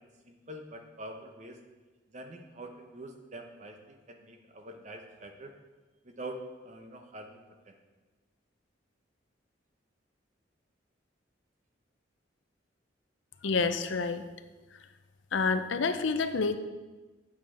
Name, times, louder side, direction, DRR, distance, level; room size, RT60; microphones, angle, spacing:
voice 1, 0.0-1.6 2.1-5.5 6.0-6.4 6.6-7.7, right 1 dB, 40° right, 4 dB, 0.9 m, -45 dB
voice 2, 13.4-14.2 15.3-16.6, left 4 dB, 75° left, 9 dB, 0.6 m, -28 dB
8.7 x 7.7 x 4.3 m, 1.3 s
head